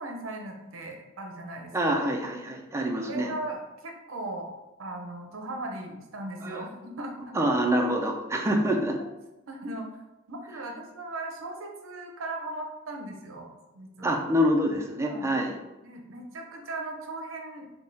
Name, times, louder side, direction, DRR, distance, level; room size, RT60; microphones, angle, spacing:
voice 1, 0.0-2.0 3.0-4.5 4.8-7.3 9.5-10.0 10.3-14.2 15.0-15.3 15.8-17.7, right 2 dB, 75° right, 2 dB, 0.7 m, -38 dB
voice 2, 1.7-3.3 6.4-6.6 7.3-9.0 14.0-15.5, equal, 15° right, 2 dB, 0.4 m, -26 dB
3.5 x 2.3 x 4.0 m, 1.0 s
head